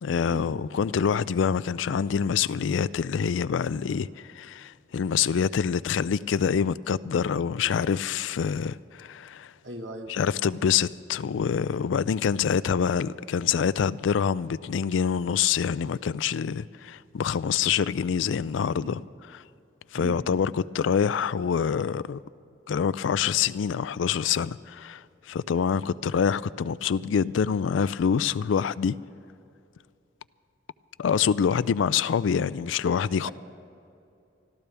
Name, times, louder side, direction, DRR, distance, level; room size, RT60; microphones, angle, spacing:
voice 1, 0.0-9.5 10.1-19.0 19.3-19.4 19.9-22.2 22.7-28.9 31.0-33.3, left 7 dB, 85° left, 0.4 m, -26 dB
voice 2, 9.6-10.1 18.8-18.9 19.9-20.2 33.2-33.3, right 1 dB, 70° right, 1.4 m, -37 dB
24.5 x 13.5 x 3.4 m
head